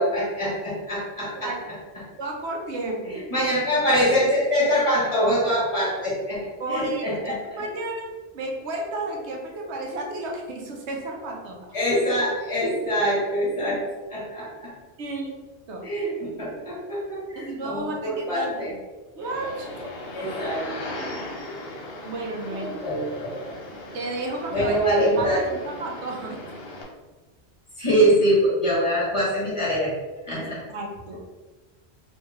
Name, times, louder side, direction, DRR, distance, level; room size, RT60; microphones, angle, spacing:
voice 1, 0.0-1.5 3.1-6.4 6.7-7.3 11.7-13.8 14.1-14.7 15.8-18.7 20.1-20.7 22.5-23.5 24.5-25.4 27.8-29.9 30.2-30.6, equal, 30° left, -6 dB, 1.2 m, -24 dB
voice 2, 1.4-1.7 2.2-3.2 6.6-8.1 8.3-11.6 15.0-15.8 17.4-18.8 19.1-19.9 21.4-21.5 22.0-22.7 23.9-24.8 25.2-26.4 30.4-31.2, right 2 dB, 85° right, 1 dB, 1.0 m, -32 dB
sound 1, 19.2-26.8, left 1 dB, 60° left, 1.0 m, -38 dB
3.1 x 2.7 x 3.4 m, 1.3 s
omnidirectional pair, 1.1 m